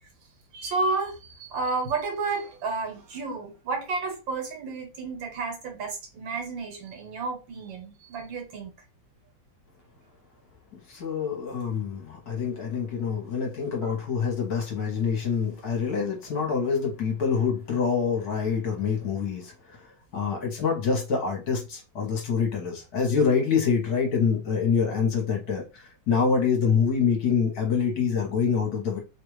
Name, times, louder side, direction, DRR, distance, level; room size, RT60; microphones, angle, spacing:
voice 1, 0.5-8.7 13.8-13.9, right 3 dB, 75° right, 1.6 m, -31 dB
voice 2, 10.9-29.0, left 6 dB, 60° left, 1.3 m, -26 dB
3.3 x 2.3 x 3.1 m
omnidirectional pair, 2.1 m